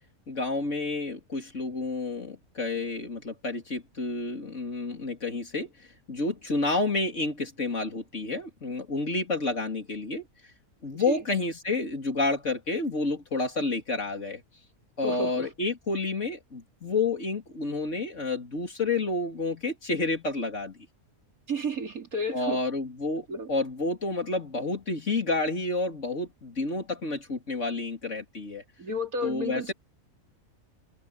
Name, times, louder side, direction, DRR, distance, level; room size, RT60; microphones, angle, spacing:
voice 1, 0.3-5.7 6.1-10.3 10.8-14.4 15.0-20.8 22.3-28.6 29.2-29.7, left 3 dB, 55° left, 3.5 m, -30 dB
voice 2, 15.0-15.5 21.5-22.6 23.3-23.5 28.8-29.7, equal, 80° right, 3.6 m, -32 dB
omnidirectional pair, 1.5 m